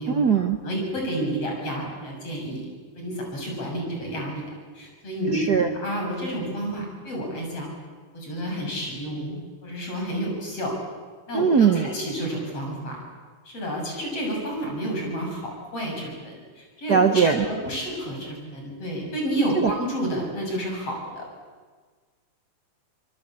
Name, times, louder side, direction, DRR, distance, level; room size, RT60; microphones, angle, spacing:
voice 1, 0.1-0.6 5.3-5.7 11.3-11.9 16.9-17.4, right 6 dB, 60° right, 6 dB, 1.0 m, -20 dB
voice 2, 0.6-2.7 2.9-4.4 4.7-7.7 8.1-10.8 11.3-13.0 13.5-21.3, right 1 dB, 50° left, 0 dB, 8.1 m, -30 dB
26.5 x 22.0 x 8.7 m, 1.5 s
omnidirectional pair, 3.5 m